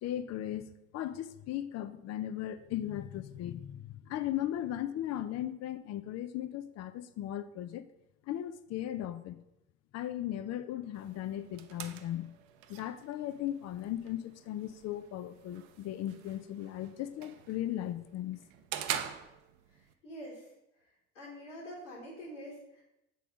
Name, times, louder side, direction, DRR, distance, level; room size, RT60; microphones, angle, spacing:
voice 1, 0.0-7.8 8.3-9.4 9.9-12.3 12.7-18.4 18.9-19.0, left 12 dB, 45° left, 13 dB, 0.5 m, -37 dB
sound 1, 10.9-19.9, right 10 dB, 65° right, 0.7 m, -45 dB
voice 2, 19.7-20.5 21.1-22.8, equal, 90° left, -6 dB, 2.2 m, -46 dB
6.6 x 3.9 x 5.1 m, 0.85 s
hypercardioid pair, 65°, 37 cm